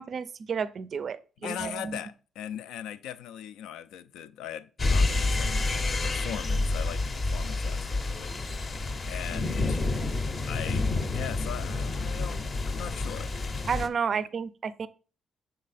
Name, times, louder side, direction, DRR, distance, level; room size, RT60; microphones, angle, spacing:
voice 1, 0.0-2.0 13.7-14.9, right 6 dB, 50° right, 0.4 m, -31 dB
voice 2, 1.4-8.4 9.0-9.8 10.4-13.3 14.1-14.2, left 10 dB, 90° left, 0.3 m, -40 dB
sound 1, 4.8-13.9, left 3 dB, 35° left, 0.6 m, -29 dB
6.4 x 3.8 x 4.1 m
cardioid pair, 90°, 0 cm